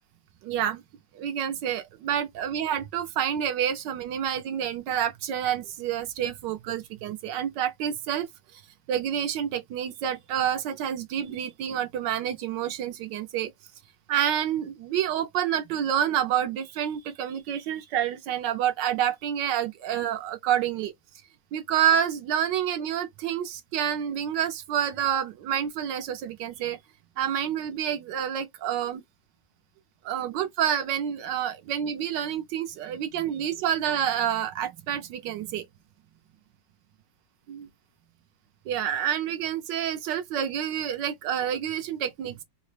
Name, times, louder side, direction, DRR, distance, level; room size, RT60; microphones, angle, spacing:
voice 1, 0.4-0.8 1.1-8.6 8.9-13.5 14.1-20.9 21.5-26.8 27.2-29.0 30.0-35.7 38.7-42.4, right 9 dB, 75° right, 1.2 m, -28 dB
4.1 x 2.0 x 3.1 m
omnidirectional pair, 2.1 m